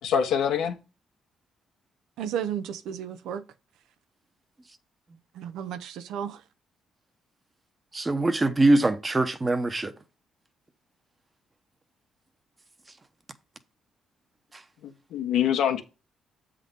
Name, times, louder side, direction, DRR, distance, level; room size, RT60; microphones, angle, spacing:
voice 1, 0.0-0.7 14.8-15.8, left 8 dB, 85° left, 1.4 m, -25 dB
voice 2, 2.2-3.4 5.4-6.4, right 9 dB, 85° right, 0.7 m, -33 dB
voice 3, 7.9-9.9, right 2 dB, 25° right, 0.9 m, -23 dB
7.6 x 3.8 x 5.3 m
cardioid pair, 90°, 0 cm